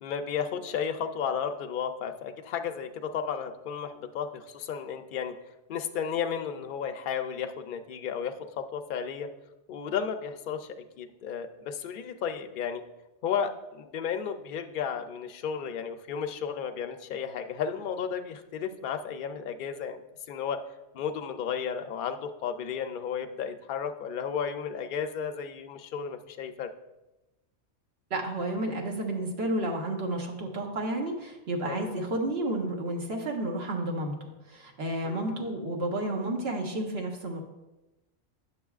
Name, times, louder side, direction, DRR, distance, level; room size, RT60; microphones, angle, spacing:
voice 1, 0.0-5.3 5.7-9.3 9.7-12.8 13.2-20.0 20.3-20.6 20.9-26.7 31.6-31.9 35.0-35.6, left 7 dB, 60° left, 7 dB, 0.6 m, -33 dB
voice 2, 28.1-34.1 34.5-37.4, right 1 dB, 65° right, 1 dB, 1.2 m, -31 dB
9.0 x 6.7 x 2.4 m, 1.0 s
omnidirectional pair, 1.2 m